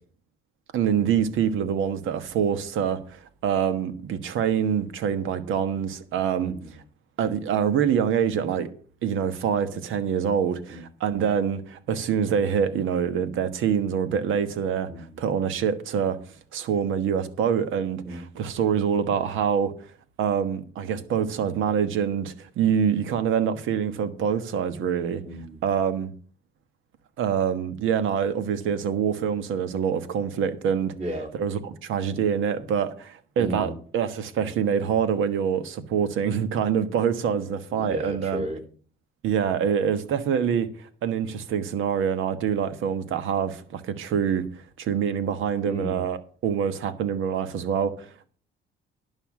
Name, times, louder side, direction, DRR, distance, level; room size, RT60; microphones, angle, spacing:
voice 1, 0.7-6.5 7.2-8.7 9.0-16.2 16.5-19.7 20.2-25.2 25.6-26.1 27.2-30.9 31.4-38.4 39.2-44.5 44.8-48.1, right 7 dB, 80° right, 1.4 m, -25 dB
voice 2, 6.4-6.7 10.7-10.8 14.9-15.2 18.0-18.2 25.2-25.6 31.0-31.3 33.4-33.8 37.8-38.6 45.6-46.0, right 1 dB, 30° right, 3.5 m, -34 dB
11.5 x 5.6 x 7.4 m
cardioid pair, 90°, 20 cm